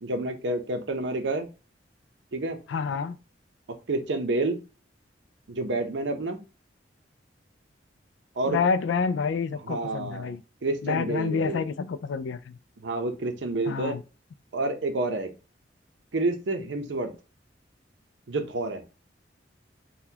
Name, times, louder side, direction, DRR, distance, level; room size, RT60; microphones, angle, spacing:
voice 1, 0.0-1.5 2.3-2.6 3.9-4.6 5.5-6.4 8.4-8.6 9.6-11.6 12.8-14.0 14.5-15.3 16.1-17.1 18.3-18.8, right 2 dB, 80° right, 0.7 m, -29 dB
voice 2, 2.7-3.2 8.4-10.4 10.8-12.6 13.7-14.0, left 5 dB, 90° left, 0.3 m, -28 dB
4.0 x 2.2 x 2.8 m
head